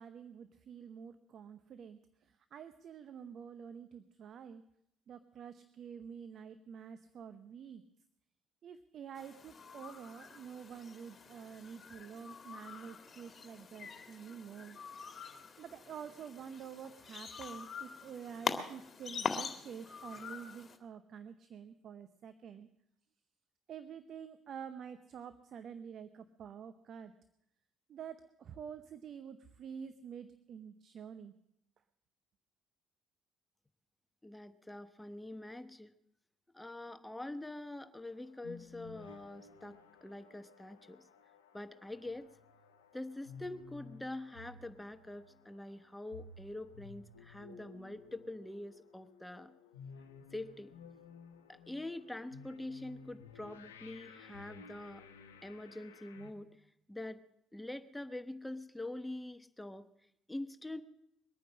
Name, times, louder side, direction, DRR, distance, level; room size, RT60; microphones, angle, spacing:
voice 1, 0.0-4.6 5.1-7.8 8.6-14.8 15.6-22.7 23.7-27.1 27.9-31.3, right 7 dB, 55° right, 11 dB, 0.8 m, -48 dB
sound 1, 9.2-20.8, left 5 dB, 40° left, 2.0 m, -44 dB
voice 2, 34.2-35.9 36.5-41.0 41.5-42.3 42.9-49.5 50.3-50.7 51.5-55.1 55.4-56.5 56.9-57.2 57.5-59.8 60.3-60.8, left 1 dB, 10° left, 11 dB, 1.0 m, -45 dB
sound 2, 37.9-56.3, left 5 dB, 90° left, 0.9 m, -55 dB
22.5 x 9.2 x 6.3 m, 0.76 s
hypercardioid pair, 50°, 0 cm